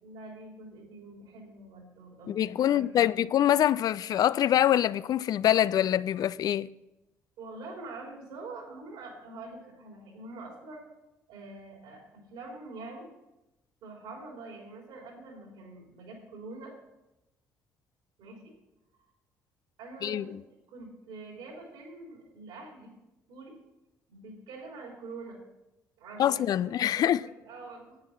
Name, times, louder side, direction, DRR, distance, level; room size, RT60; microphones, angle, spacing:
voice 1, 0.0-3.2 7.4-10.8 11.3-13.1 13.8-16.7 18.2-18.5 19.8-20.3 20.7-22.9 23.3-23.6 24.1-25.4 26.0-28.0, right 3 dB, 75° right, 3.4 m, -45 dB
voice 2, 2.3-6.7 20.0-20.2 26.2-27.2, left 11 dB, 55° left, 0.4 m, -25 dB
9.7 x 8.9 x 5.6 m
hypercardioid pair, 55°, 8 cm